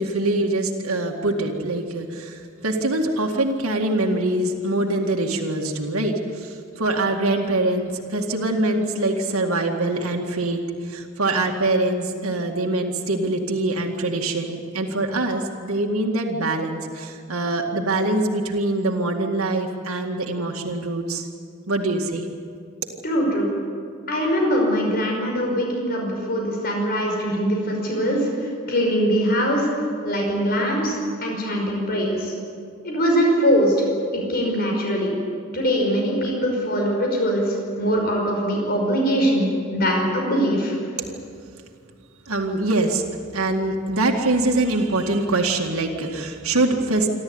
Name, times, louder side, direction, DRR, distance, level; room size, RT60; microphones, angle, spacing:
voice 1, 0.0-21.3 21.7-22.3 42.3-43.0 43.3-47.1, right 2 dB, 80° right, 1 dB, 2.0 m, -24 dB
voice 2, 23.0-23.5 24.1-29.7 30.0-32.3 32.8-33.7 34.1-35.1 35.5-40.8, equal, 45° left, 0 dB, 5.5 m, -22 dB
27.5 x 13.0 x 9.6 m, 2.3 s
head